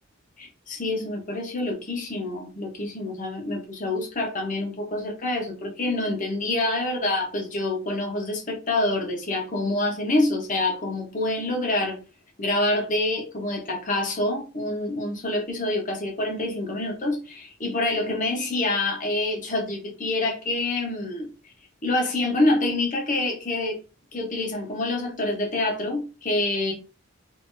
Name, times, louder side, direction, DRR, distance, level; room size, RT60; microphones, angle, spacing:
voice 1, 0.4-12.0 12.4-21.3 21.8-23.8 24.1-26.7, left 2 dB, 40° left, 1.0 m, -26 dB
3.6 x 2.8 x 2.7 m
head